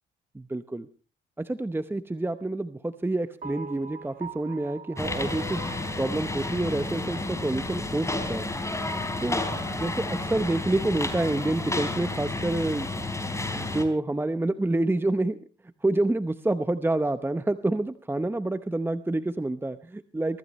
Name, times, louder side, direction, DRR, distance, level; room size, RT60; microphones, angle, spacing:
voice 1, 0.3-0.9 1.4-5.7 6.0-8.5 9.2-9.4 9.7-12.9 13.5-15.4 15.8-20.4, right 2 dB, 10° right, 11 dB, 0.9 m, -28 dB
sound 1, 3.4-7.8, right 4 dB, 40° right, 1.6 m, -42 dB
sound 2, 5.0-13.8, left 2 dB, 15° left, 3.8 m, -31 dB
24.0 x 15.5 x 3.2 m, 0.36 s
cardioid pair, 90°, 20 cm